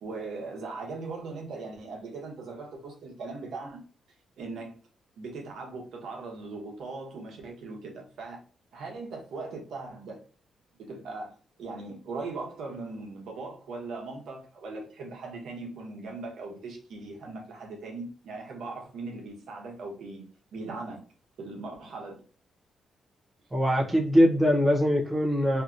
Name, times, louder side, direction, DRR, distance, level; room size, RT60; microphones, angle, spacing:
voice 1, 0.0-3.8 4.4-4.8 5.2-8.4 8.7-10.2 10.8-21.0 21.4-22.2, right 3 dB, 75° right, 0.9 m, -39 dB
voice 2, 23.5-25.6, equal, 15° right, 0.7 m, -22 dB
2.8 x 2.6 x 2.4 m
cardioid pair, 135°, 0 cm